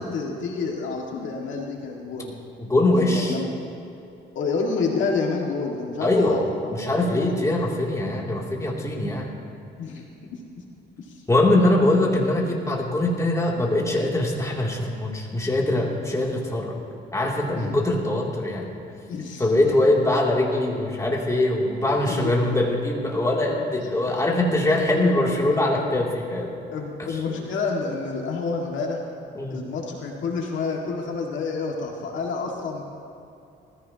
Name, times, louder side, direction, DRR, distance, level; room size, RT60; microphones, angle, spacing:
voice 1, 0.0-2.3 2.9-3.5 4.4-7.6 9.8-10.0 11.0-11.2 17.5-17.7 19.1-19.5 22.0-22.5 23.7-24.1 24.9-25.2 25.4-25.9 26.7-29.1 29.5-32.8, left 4 dB, 70° left, 0 dB, 1.9 m, -29 dB
voice 2, 2.6-3.4 6.0-6.4 6.7-9.3 11.3-16.8 17.1-18.7 19.4-26.5 29.3-29.6, left 1 dB, 15° left, -3 dB, 2.7 m, -22 dB
20.0 x 14.5 x 2.9 m, 2.7 s
cardioid pair, 90°, 20 cm